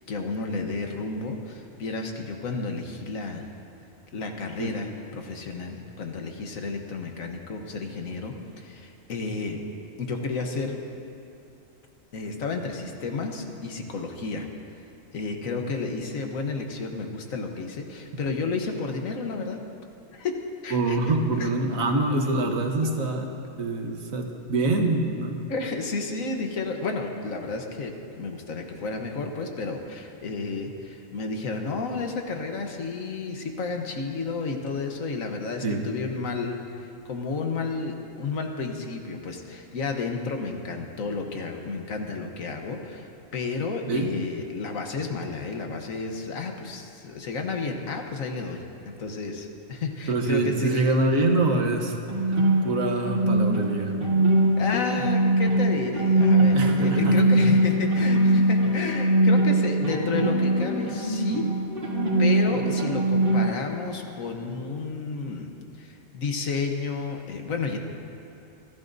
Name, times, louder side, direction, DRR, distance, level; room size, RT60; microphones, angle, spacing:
voice 1, 0.1-3.5 4.1-9.6 10.0-10.8 12.1-14.5 15.1-19.6 20.1-20.4 20.6-21.0 21.4-21.5 22.8-22.9 25.5-50.9 54.6-61.4 62.2-67.8, left 4 dB, 85° left, 3 dB, 1.5 m, -32 dB
voice 2, 20.7-23.3 23.6-25.4 35.6-35.8 43.9-44.1 50.1-53.9 56.5-57.2, right 2 dB, 85° right, 3 dB, 1.6 m, -25 dB
sound 1, 52.1-63.5, right 1 dB, 45° right, 1.9 m, -22 dB
27.5 x 11.0 x 2.7 m, 2.7 s
omnidirectional pair, 1.4 m